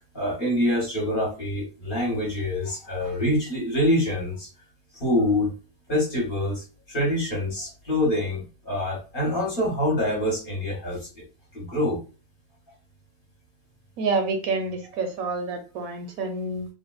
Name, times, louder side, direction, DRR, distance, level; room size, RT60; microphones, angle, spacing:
voice 1, 0.1-4.5 4.9-5.5 5.9-11.2 11.5-12.0, left 1 dB, 40° left, -2 dB, 1.0 m, -25 dB
voice 2, 14.0-16.7, right 3 dB, 70° right, 5 dB, 1.0 m, -28 dB
3.4 x 2.2 x 2.2 m, 0.33 s
omnidirectional pair, 1.6 m